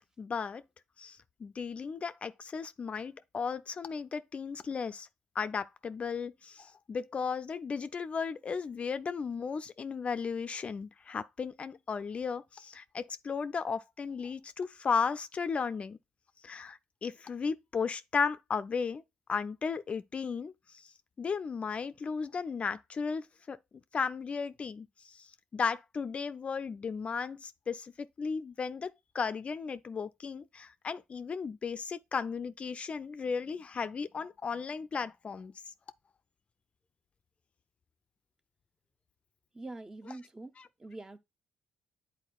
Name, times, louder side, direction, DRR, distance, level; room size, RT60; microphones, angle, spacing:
voice 1, 0.2-0.6 1.0-5.1 5.4-16.0 16.4-19.0 19.3-20.9 21.2-23.6 23.9-35.7, left 5 dB, 40° left, 0.3 m, -35 dB
voice 2, 39.5-40.5 40.8-41.2, right 2 dB, 20° right, 0.6 m, -44 dB
9.7 x 4.2 x 2.3 m
hypercardioid pair, 60°, 3 cm